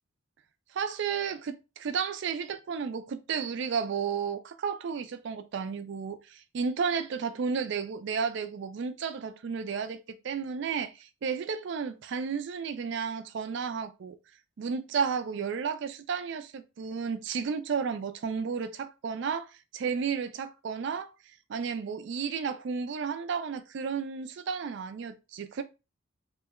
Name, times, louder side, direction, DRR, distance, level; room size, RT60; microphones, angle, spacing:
voice 1, 0.7-14.2 14.6-21.1 21.5-25.6, right 6 dB, 60° right, 0.3 m, -32 dB
3.0 x 2.1 x 3.6 m
head